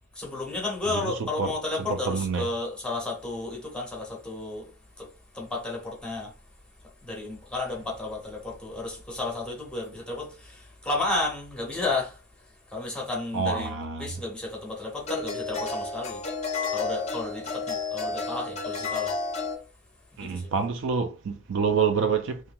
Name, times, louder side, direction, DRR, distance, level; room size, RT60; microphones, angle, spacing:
voice 1, 0.1-4.7 5.0-6.3 7.0-12.2 12.7-16.2 16.7-19.1 20.2-20.5, left 2 dB, 5° left, 1.0 m, -32 dB
voice 2, 0.9-1.5 1.8-2.5 13.3-14.1 20.2-22.4, right 5 dB, 65° right, 0.4 m, -27 dB
sound 1, 13.7-13.8 15.0-19.6, left 4 dB, 35° left, 0.5 m, -31 dB
2.9 x 2.3 x 2.5 m
head